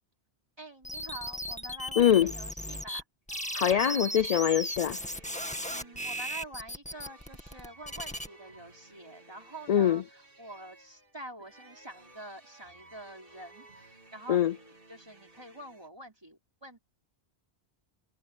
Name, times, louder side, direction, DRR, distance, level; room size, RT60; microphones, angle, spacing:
voice 1, 0.6-3.0 5.7-16.8, right 1 dB, 25° right, 4.1 m, -47 dB
sound 1, 0.8-3.0 3.3-8.3, equal, 5° left, 1.9 m, -36 dB
voice 2, 2.0-2.3 3.5-5.0 9.7-10.0 14.3-14.5, left 10 dB, 55° left, 0.4 m, -23 dB
sound 2, 3.3-15.9, right 2 dB, 55° right, 3.1 m, -56 dB
omnidirectional pair, 1.1 m